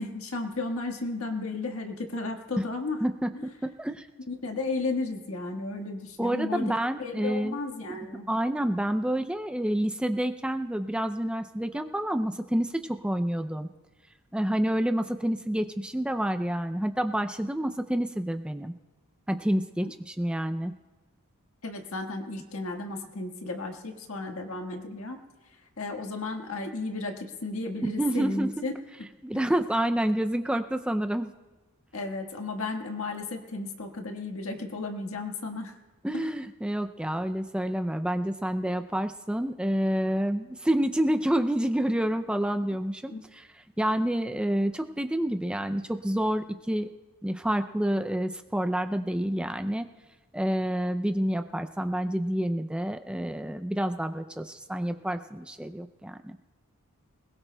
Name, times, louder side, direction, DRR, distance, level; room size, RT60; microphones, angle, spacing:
voice 1, 0.0-3.0 3.3-3.5 4.3-8.3 19.8-19.9 21.6-25.2 25.8-28.7 29.3-29.5 31.9-35.8 36.1-36.3 43.1-43.2, left 3 dB, 75° left, 3 dB, 1.6 m, -34 dB
voice 2, 3.6-4.1 6.2-7.6 7.9-8.0 8.3-13.7 14.3-18.7 19.3-20.7 27.8-28.5 29.2-31.3 36.0-43.5 43.8-46.9 47.2-49.9 50.3-56.4, right 1 dB, 5° right, 8 dB, 0.4 m, -28 dB
21.5 x 20.0 x 2.2 m, 1.2 s
head